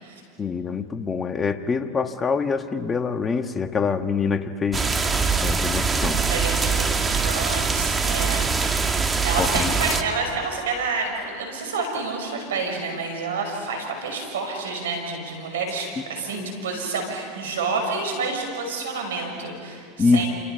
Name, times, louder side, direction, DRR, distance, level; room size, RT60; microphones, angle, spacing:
voice 1, 0.4-4.9 5.4-6.2 9.4-9.7 16.3-16.7 20.0-20.2, left 5 dB, 20° left, 8 dB, 1.5 m, -25 dB
sound 1, 4.7-10.0, right 5 dB, 20° right, 1.7 m, -23 dB
voice 2, 6.3-20.3, right 4 dB, 85° right, 3 dB, 6.1 m, -29 dB
28.5 x 27.5 x 5.8 m, 2.2 s
hypercardioid pair, 100°, 0 cm